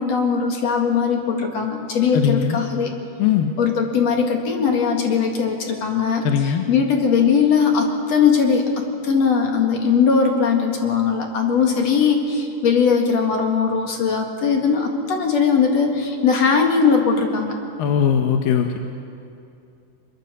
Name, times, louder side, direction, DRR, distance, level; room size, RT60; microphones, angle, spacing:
voice 1, 0.0-2.9 3.6-8.6 9.0-17.6, left 6 dB, 50° left, 3 dB, 2.7 m, -19 dB
voice 2, 2.1-2.6 3.2-3.5 6.2-6.6 17.8-18.8, left 8 dB, 75° left, 5 dB, 2.6 m, -19 dB
23.5 x 22.5 x 6.8 m, 2.5 s
omnidirectional pair, 4.4 m